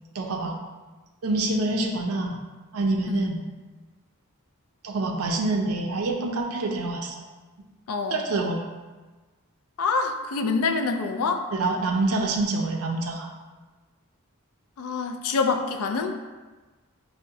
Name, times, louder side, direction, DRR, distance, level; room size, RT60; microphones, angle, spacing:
voice 1, 0.1-0.6 1.2-2.4 2.7-3.4 4.8-7.2 8.1-8.7 11.5-13.3, right 2 dB, 70° right, 2 dB, 0.4 m, -26 dB
voice 2, 9.8-11.4 14.8-16.1, left 4 dB, 70° left, 5 dB, 0.4 m, -26 dB
5.5 x 2.1 x 2.6 m, 1.3 s
head